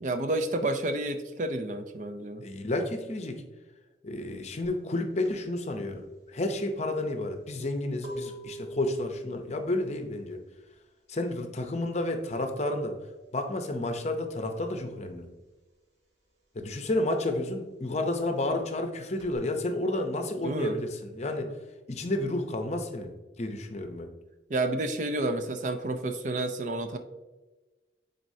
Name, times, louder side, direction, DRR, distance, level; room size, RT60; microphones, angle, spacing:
voice 1, 0.0-2.4 20.4-20.8 24.5-27.0, right 2 dB, 45° right, 8 dB, 0.5 m, -30 dB
voice 2, 2.4-3.4 4.0-6.0 6.3-10.4 11.1-13.0 13.3-15.3 16.5-21.5 21.9-23.1 23.4-24.1, left 1 dB, 40° left, 6 dB, 0.7 m, -31 dB
sound 1, 4.6-14.9 15.1-19.4, equal, 75° right, 1.7 m, -47 dB
9.3 x 4.2 x 2.7 m, 1.2 s
head